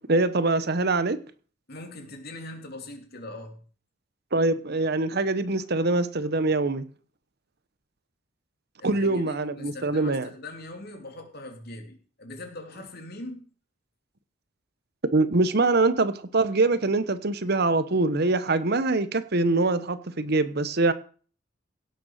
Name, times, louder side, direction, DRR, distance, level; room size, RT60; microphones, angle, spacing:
voice 1, 0.1-1.2 4.3-6.8 8.8-10.3 15.1-20.9, right 2 dB, 55° right, 13 dB, 1.0 m, -24 dB
voice 2, 1.7-3.6 8.8-13.4, left 2 dB, 55° left, 4 dB, 3.2 m, -41 dB
17.0 x 6.9 x 6.6 m, 0.41 s
head